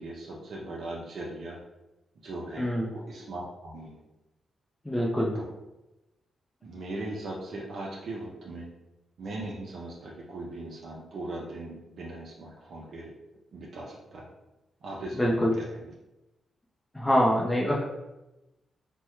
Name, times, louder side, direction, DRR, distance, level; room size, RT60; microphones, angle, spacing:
voice 1, 0.0-1.6 2.2-4.0 5.3-5.5 6.6-8.7 9.2-13.1 13.5-14.3 14.8-15.9, right 2 dB, 65° right, -3 dB, 0.5 m, -39 dB
voice 2, 2.6-2.9 4.9-5.3 15.2-15.5 16.9-17.8, equal, 10° left, -3 dB, 0.4 m, -24 dB
3.4 x 2.1 x 2.9 m, 0.98 s
cardioid pair, 115°, 0 cm